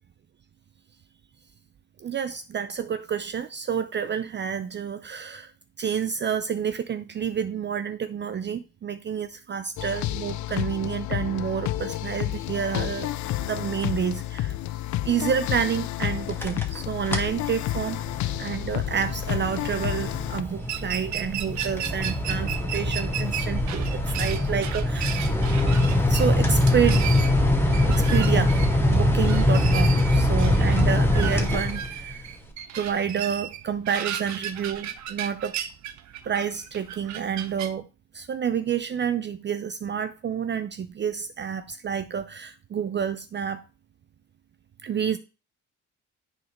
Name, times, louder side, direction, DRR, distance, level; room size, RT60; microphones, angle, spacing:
voice 1, 2.0-5.5 5.8-13.1 13.4-14.5 15.0-18.0 18.4-25.4 26.1-27.1 27.9-28.6 28.9-32.3 32.7-35.6 36.3-37.9 38.1-43.6 44.8-45.2, right 7 dB, 35° right, 0.5 m, -29 dB
sound 1, 9.8-20.4, left 14 dB, 70° left, 0.5 m, -30 dB
sound 2, 16.2-16.8 17.1-17.4 17.8-32.1, left 1 dB, 5° left, 1.5 m, -23 dB
sound 3, 20.6-37.7, right 10 dB, 65° right, 0.8 m, -35 dB
9.8 x 4.1 x 3.1 m
cardioid pair, 90°, 30 cm